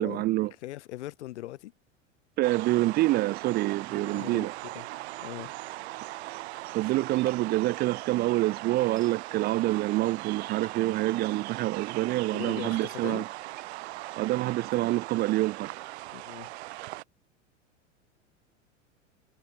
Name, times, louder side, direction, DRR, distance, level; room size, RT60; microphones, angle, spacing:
voice 1, 0.0-0.5 2.4-4.5 6.7-13.2 14.2-15.7, right 17 dB, 25° right, 0.4 m, -27 dB
voice 2, 0.6-1.7 3.9-4.9 5.2-5.5 12.3-13.3 16.1-16.5, left 15 dB, 65° left, 1.8 m, -40 dB
sound 1, 2.4-17.0, right 19 dB, 60° right, 1.1 m, -39 dB
sound 2, 6.8-7.7 8.1-8.2 8.4-9.3 10.0-10.1 10.5-11.1 11.6-11.7 11.9-12.0 12.4-13.0 13.5-16.4, right 7 dB, 80° right, 3.6 m, -53 dB
figure-of-eight pair, 90°, 37 cm